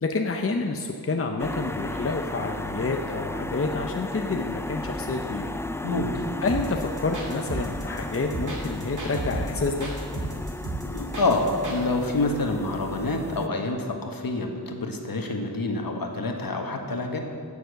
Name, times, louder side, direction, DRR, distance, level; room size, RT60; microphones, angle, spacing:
voice 1, 0.0-5.5 6.4-9.9, left 3 dB, 35° left, 3 dB, 0.8 m, -28 dB
sound 1, 1.4-13.5, left 1 dB, 5° left, 0.4 m, -35 dB
voice 2, 5.8-6.3 10.8-17.2, left 2 dB, 65° left, 3 dB, 1.5 m, -27 dB
sound 2, 6.5-11.8, right 2 dB, 50° right, 2.3 m, -33 dB
15.0 x 7.0 x 6.5 m, 2.3 s
wide cardioid pair, 95°, 38 cm